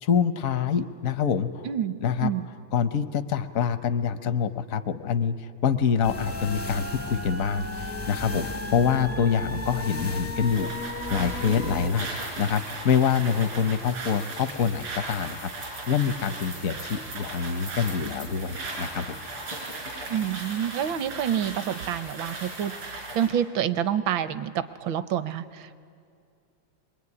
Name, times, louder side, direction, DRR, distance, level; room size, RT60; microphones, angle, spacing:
voice 1, 0.0-1.7 2.0-2.3 2.7-5.3 5.6-10.7 11.1-19.2, left 7 dB, 65° left, 11 dB, 0.8 m, -26 dB
voice 2, 1.6-2.5 20.1-25.7, right 9 dB, 70° right, 13 dB, 1.5 m, -28 dB
sound 1, 6.0-11.9, left 2 dB, 20° left, 0.3 m, -34 dB
sound 2, 10.4-23.4, right 2 dB, 85° right, 6.0 m, -37 dB
24.0 x 21.5 x 9.7 m, 2.3 s
omnidirectional pair, 2.4 m